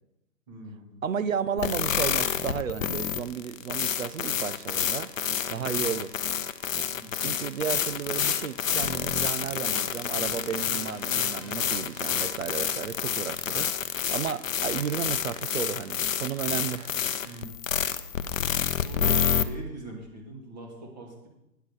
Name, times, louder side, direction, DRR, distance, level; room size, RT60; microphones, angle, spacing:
voice 1, 0.5-1.0 6.9-7.4 17.2-17.8 18.8-21.3, right 1 dB, 25° right, 0 dB, 2.1 m, -43 dB
voice 2, 1.0-5.1 5.5-6.1 7.2-16.9 17.2-17.4, right 8 dB, 55° right, 16 dB, 0.6 m, -33 dB
sound 1, 1.6-19.4, left 8 dB, 55° left, 0.7 m, -28 dB
sound 2, 7.6-12.4, left 4 dB, 15° left, 1.6 m, -51 dB
9.3 x 6.7 x 6.4 m, 0.89 s
hypercardioid pair, 175°, 48 cm